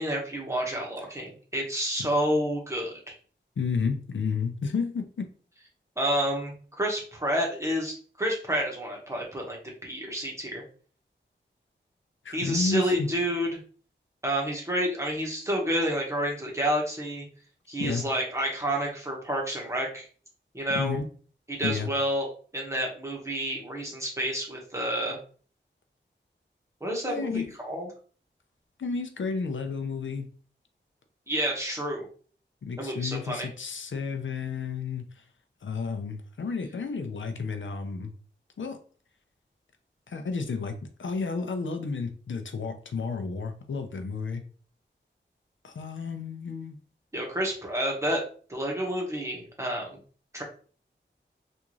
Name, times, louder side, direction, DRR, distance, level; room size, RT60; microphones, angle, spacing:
voice 1, 0.0-3.2 6.0-10.6 12.3-13.6 14.2-17.2 17.7-20.1 20.5-21.0 21.5-25.2 26.8-27.9 31.3-32.1 32.8-33.5 47.1-48.2 48.5-50.0 50.3-50.4, equal, 15° right, -2 dB, 1.3 m, -29 dB
voice 2, 3.6-5.3 12.2-13.1 17.8-18.0 20.7-21.1 21.6-21.9 27.1-27.4 28.8-30.3 32.6-35.2 35.6-38.1 38.6-38.8 40.1-44.4 45.6-46.8, left 5 dB, 80° left, 6 dB, 0.5 m, -31 dB
3.4 x 2.6 x 3.1 m, 0.42 s
wide cardioid pair, 55°, 19 cm